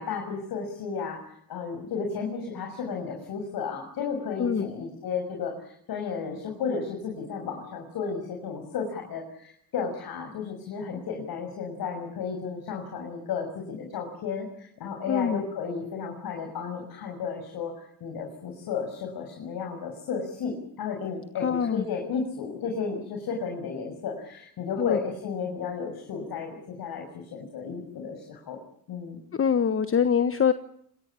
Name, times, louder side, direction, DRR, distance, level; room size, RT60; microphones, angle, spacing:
voice 1, 0.0-27.0 27.3-28.6 28.9-29.2, left 5 dB, 65° left, 2 dB, 6.8 m, -33 dB
voice 2, 15.1-15.4 21.4-21.8 24.8-25.0 29.3-30.5, left 7 dB, 35° left, 11 dB, 1.3 m, -24 dB
26.0 x 20.0 x 8.5 m, 0.67 s
supercardioid pair, 75°, 39 cm